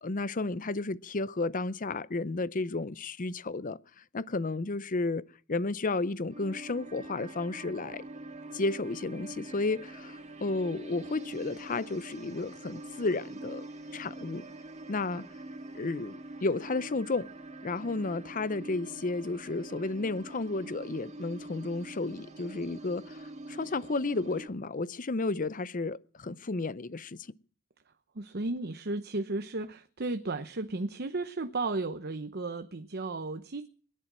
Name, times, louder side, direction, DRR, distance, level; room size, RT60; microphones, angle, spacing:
voice 1, 0.0-3.8 4.1-8.1 8.5-13.7 13.9-14.4 14.9-15.3 15.7-17.3 17.6-27.2, left 3 dB, 40° left, 0.7 m, -32 dB
sound 1, 6.3-24.5, right 2 dB, 35° right, 2.6 m, -45 dB
voice 2, 28.1-33.7, right 2 dB, 50° right, 0.9 m, -34 dB
21.5 x 11.0 x 6.2 m
head